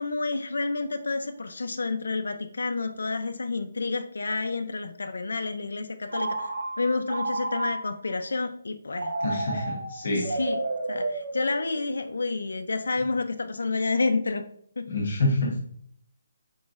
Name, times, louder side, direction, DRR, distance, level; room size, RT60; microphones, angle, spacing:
voice 1, 0.0-9.1 10.2-10.6 10.9-14.4 14.8-14.9, left 3 dB, 85° left, 7 dB, 0.5 m, -29 dB
Telephone, 6.1-8.1 8.9-12.0, right 2 dB, 45° right, 0.7 m, -32 dB
voice 2, 9.2-10.2 14.9-15.6, left 2 dB, 45° left, -2 dB, 0.8 m, -27 dB
4.7 x 3.9 x 2.4 m, 0.63 s
hypercardioid pair, 180°, 0 cm